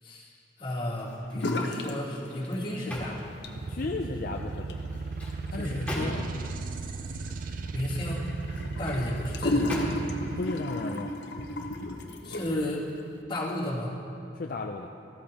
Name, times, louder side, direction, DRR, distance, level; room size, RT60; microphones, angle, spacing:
voice 1, 0.0-3.2 5.5-6.2 7.7-8.2 8.8-10.0 12.2-12.9 13.3-14.0, left 1 dB, 30° left, -8 dB, 2.4 m, -33 dB
sound 1, 0.9-1.7 2.1-4.0 4.8-6.5 8.3-9.0 9.7-10.3 10.8-11.0, equal, 10° left, 2.2 m, -40 dB
sound 2, 1.3-2.0 2.2-2.9 3.3-12.7, left 1 dB, 70° left, 0.9 m, -35 dB
sound 3, 3.6-10.4, right 4 dB, 50° right, 0.4 m, -36 dB
voice 2, 3.7-5.0 5.5-6.3 10.4-11.1 14.3-14.9, left 3 dB, 50° left, 3 dB, 0.4 m, -35 dB
14.5 x 13.5 x 2.9 m, 2.7 s
head